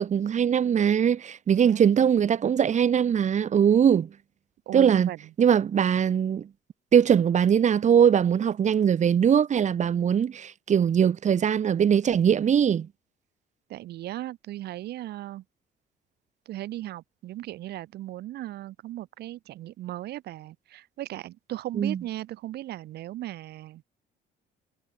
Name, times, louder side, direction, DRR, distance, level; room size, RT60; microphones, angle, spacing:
voice 1, 0.0-4.1 4.7-5.1 5.4-6.5 6.9-12.9 21.8-22.0, right 8 dB, 45° right, 3.5 m, -21 dB
voice 2, 1.6-1.9 4.7-5.3 13.7-15.4 16.5-23.8, right 14 dB, 75° right, 7.7 m, -37 dB
cardioid pair, 110°, 17 cm